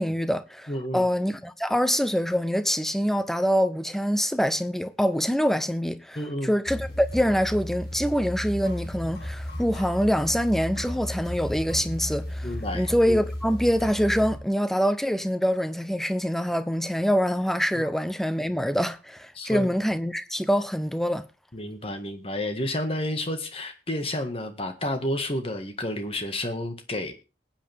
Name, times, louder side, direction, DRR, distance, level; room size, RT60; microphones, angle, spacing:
voice 1, 0.0-6.2 6.4-12.5 12.7-21.2, equal, ahead, 0.7 m, -25 dB
voice 2, 0.7-1.1 6.2-6.5 12.4-12.9 17.8-17.9 19.4-19.7 21.5-27.1, left 1 dB, 35° left, 1.8 m, -30 dB
sound 1, 6.7-14.4, left 1 dB, 55° left, 5.5 m, -34 dB
21.0 x 8.9 x 3.5 m
head